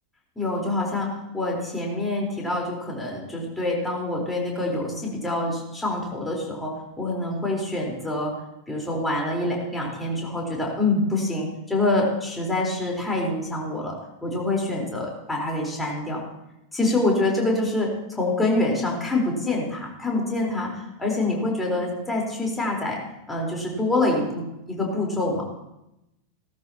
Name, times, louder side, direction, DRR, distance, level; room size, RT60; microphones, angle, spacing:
voice 1, 0.4-1.1 1.3-6.7 7.0-8.3 8.7-14.0 14.2-16.2 16.7-23.0 23.3-25.4, left 2 dB, 5° left, -2 dB, 4.1 m, -26 dB
17.0 x 13.5 x 2.9 m, 0.90 s
figure-of-eight pair, 90°, 0 cm